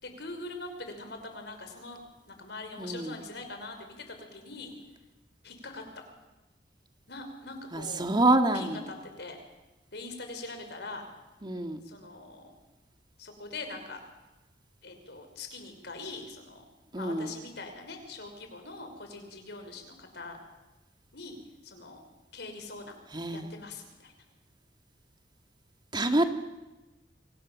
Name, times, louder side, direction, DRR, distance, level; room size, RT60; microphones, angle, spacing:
voice 1, 0.0-2.0 2.3-4.7 5.4-5.8 7.1-8.0 8.5-9.4 9.9-11.1 11.8-12.5 13.2-14.0 14.8-16.6 16.9-20.4 21.1-21.4 21.6-22.0 22.3-23.0 23.3-24.1, left 3 dB, 65° left, 5 dB, 5.6 m, -42 dB
voice 2, 2.8-3.1 7.7-8.8 11.4-11.8 16.9-17.3 23.1-23.5 25.9-26.3, right 2 dB, 25° right, 6 dB, 1.9 m, -26 dB
29.0 x 24.5 x 7.4 m, 1.0 s
head